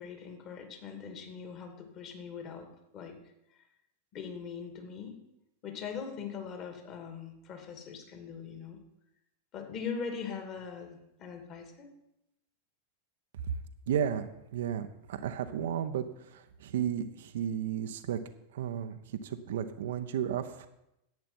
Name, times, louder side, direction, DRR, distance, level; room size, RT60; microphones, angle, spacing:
voice 1, 0.0-3.2 4.1-5.2 5.6-8.8 9.5-11.9, left 6 dB, 35° left, 5 dB, 2.5 m, -41 dB
voice 2, 13.9-16.0 16.3-18.2 18.5-20.7, right 9 dB, 60° right, 9 dB, 0.8 m, -33 dB
10.5 x 8.7 x 6.0 m, 0.84 s
figure-of-eight pair, 90°, 0 cm